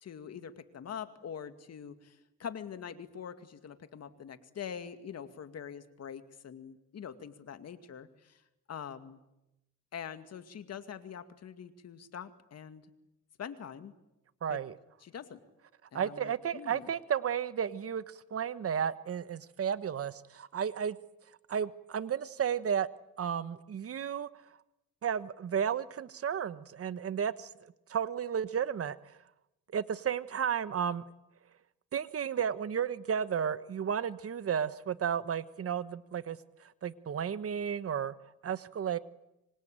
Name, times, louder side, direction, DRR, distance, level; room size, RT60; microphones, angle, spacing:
voice 1, 0.0-8.3 8.7-9.2 9.9-12.8 13.4-13.9 14.5-14.6 15.0-15.4 15.9-16.9, left 8 dB, 55° left, 9 dB, 2.3 m, -44 dB
voice 2, 14.4-14.8 15.9-21.0 21.5-22.9 23.2-24.3 25.0-27.5 27.9-29.0 29.7-31.0 31.9-36.4 36.8-38.1 38.4-39.0, right 8 dB, 50° right, 14 dB, 1.2 m, -33 dB
25.5 x 25.0 x 9.0 m, 0.91 s
cardioid pair, 90°, 30 cm